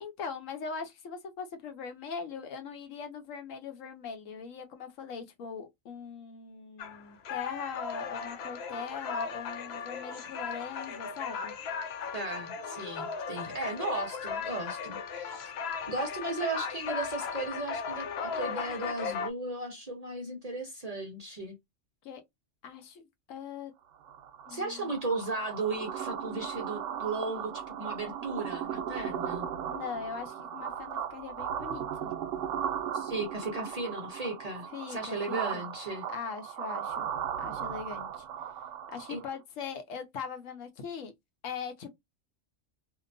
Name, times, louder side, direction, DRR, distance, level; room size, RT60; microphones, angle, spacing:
voice 1, 0.0-11.5 22.0-22.2 22.6-23.7 24.5-24.9 29.7-32.1 34.7-35.7 36.1-37.1 37.4-38.2 38.9-41.1 41.4-41.9, left 6 dB, 80° left, 1.1 m, -41 dB
sound 1, 6.8-19.3, left 5 dB, 65° left, 0.7 m, -37 dB
voice 2, 12.1-15.4 15.9-21.5 24.5-29.5 32.9-36.1 39.1-39.2, right 2 dB, 45° right, 0.5 m, -36 dB
sound 2, 24.0-39.3, right 9 dB, 75° right, 0.9 m, -37 dB
2.8 x 2.1 x 2.5 m
omnidirectional pair, 1.3 m